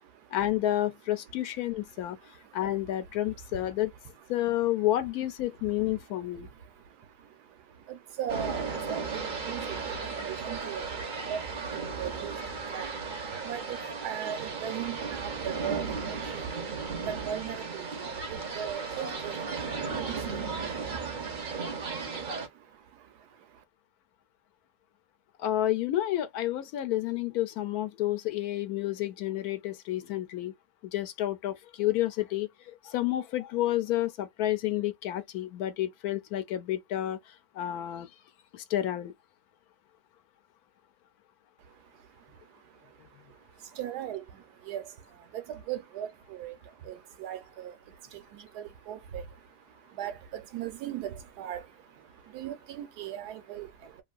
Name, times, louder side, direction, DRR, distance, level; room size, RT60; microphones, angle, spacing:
voice 1, 0.3-2.2 2.5-3.9 4.3-6.5 25.4-30.5 30.8-38.1 38.5-39.1, left 13 dB, 75° left, 1.0 m, -30 dB
voice 2, 1.9-3.7 4.6-4.7 5.6-23.6 41.6-54.0, right 10 dB, 75° right, 1.2 m, -41 dB
sound 1, 8.3-22.5, right 5 dB, 50° right, 0.6 m, -35 dB
2.9 x 2.6 x 2.3 m
omnidirectional pair, 1.7 m